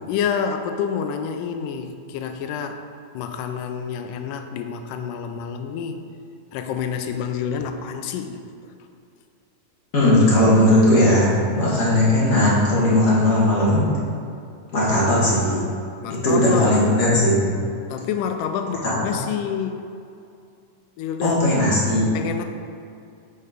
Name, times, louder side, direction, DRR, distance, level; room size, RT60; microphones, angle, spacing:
voice 1, 0.1-2.9 3.1-6.0 6.5-8.4 16.0-16.8 17.9-19.9 21.0-21.4 22.1-22.4, left 7 dB, 80° left, 6 dB, 2.1 m, -28 dB
voice 2, 9.9-11.3 11.6-13.8 14.7-15.6 16.1-17.5 18.8-19.0 21.2-22.1, left 1 dB, 40° left, -8 dB, 1.2 m, -17 dB
6.5 x 5.5 x 5.0 m, 2.4 s
omnidirectional pair, 3.9 m